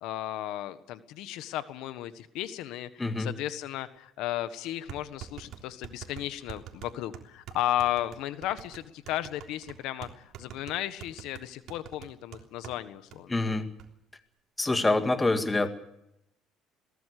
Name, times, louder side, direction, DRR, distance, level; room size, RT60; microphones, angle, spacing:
voice 1, 0.0-13.6, left 13 dB, 75° left, 12 dB, 1.5 m, -34 dB
voice 2, 3.0-3.3 13.3-13.7 14.6-15.7, left 2 dB, 15° left, 8 dB, 2.0 m, -26 dB
sound 1, 4.0-4.1 4.9-12.8 13.1-13.2 13.5-13.9, right 10 dB, 60° right, 3.4 m, -45 dB
22.0 x 19.0 x 6.8 m, 0.79 s
cardioid pair, 130°, 0 cm